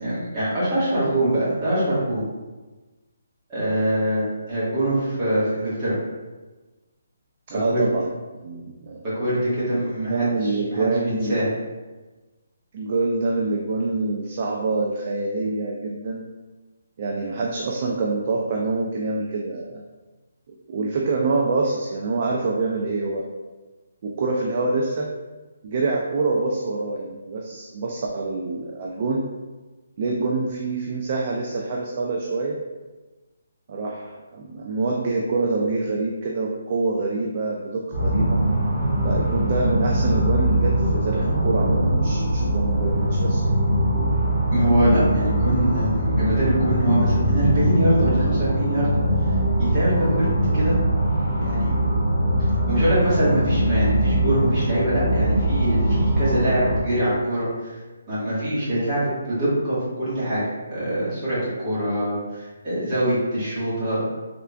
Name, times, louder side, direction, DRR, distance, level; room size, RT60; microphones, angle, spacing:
voice 1, 0.0-2.2 3.5-6.0 7.5-7.8 9.0-11.5 44.5-48.9 49.6-50.8 51.4-51.8 52.7-57.8 58.1-60.4 60.7-64.0, right 1 dB, 15° right, -11 dB, 1.4 m, -24 dB
voice 2, 7.5-8.1 8.4-9.0 9.7-11.4 12.7-16.2 17.0-19.8 20.5-23.2 24.0-25.2 25.6-29.3 30.0-32.6 33.7-38.4 39.0-43.5, right 3 dB, 30° right, -1 dB, 0.3 m, -26 dB
sound 1, 37.9-56.8, right 1 dB, ahead, 0.9 m, -22 dB
3.6 x 3.3 x 2.2 m, 1.2 s
hypercardioid pair, 175°, 0 cm